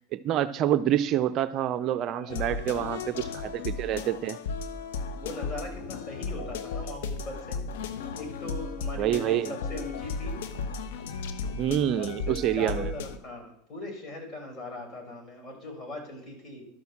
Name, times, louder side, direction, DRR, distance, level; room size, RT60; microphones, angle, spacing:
voice 1, 0.0-4.4 9.0-9.5 11.6-12.9, right 11 dB, 45° right, 0.5 m, -27 dB
voice 2, 2.1-2.7 3.1-3.3 5.2-7.6 8.1-10.4 12.0-16.7, left 2 dB, 30° left, 5.3 m, -40 dB
sound 1, 2.3-13.2, left 4 dB, 75° left, 1.0 m, -35 dB
11.5 x 6.1 x 7.1 m
hypercardioid pair, 110°, 0 cm